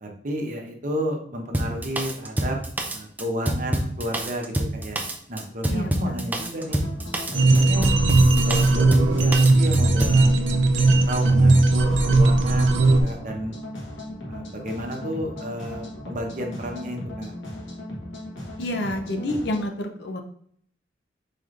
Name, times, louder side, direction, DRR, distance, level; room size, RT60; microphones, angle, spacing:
voice 1, 0.0-2.6 2.9-5.0 5.3-6.8 7.3-7.9 8.3-10.3 11.1-13.5 14.3-17.3, equal, 45° right, 1 dB, 0.9 m, -32 dB
Drum kit, 1.5-10.2, right 1 dB, 10° right, 0.4 m, -27 dB
voice 2, 5.7-6.2 7.5-7.6 18.6-20.2, left 1 dB, 65° left, 5 dB, 0.6 m, -28 dB
sound 1, 6.6-19.7, left 1 dB, 85° left, 1.4 m, -37 dB
sound 2, 7.3-13.0, right 2 dB, 85° right, 0.6 m, -18 dB
4.8 x 4.2 x 2.5 m, 0.62 s
head